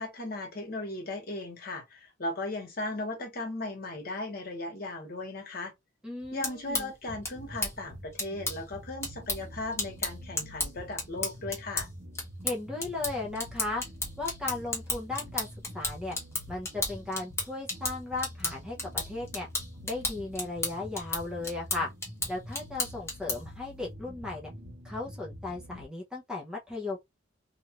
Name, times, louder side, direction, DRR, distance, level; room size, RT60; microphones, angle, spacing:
voice 1, 0.0-5.7 6.3-11.9, left 2 dB, 50° left, 1.1 m, -37 dB
voice 2, 6.0-6.9 12.4-13.8 14.2-15.5 15.7-16.2 16.5-19.5 19.8-21.9 22.3-24.5 24.8-27.0, left 2 dB, 5° right, 0.6 m, -36 dB
sound 1, 6.2-23.6, left 2 dB, 15° left, 1.0 m, -35 dB
sound 2, 7.1-25.8, equal, 60° right, 1.2 m, -46 dB
2.8 x 2.4 x 2.9 m
head